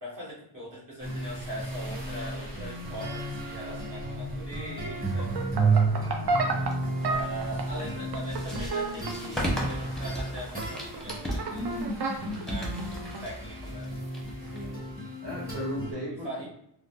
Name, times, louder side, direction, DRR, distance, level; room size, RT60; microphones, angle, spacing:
voice 1, 0.0-5.4 7.0-11.8 12.4-13.9 16.2-16.5, right 1 dB, 45° right, -7 dB, 1.4 m, -41 dB
sound 1, 1.0-15.9, right 3 dB, 20° right, 1.1 m, -32 dB
sound 2, 5.2-13.2, right 3 dB, 65° right, 0.6 m, -32 dB
voice 2, 5.5-5.9 14.5-14.8 15.2-16.5, equal, 90° right, -6 dB, 1.2 m, -36 dB
sound 3, 6.6-15.3, equal, ahead, 0.7 m, -37 dB
3.7 x 2.1 x 2.4 m, 0.76 s
wide cardioid pair, 110°, 43 cm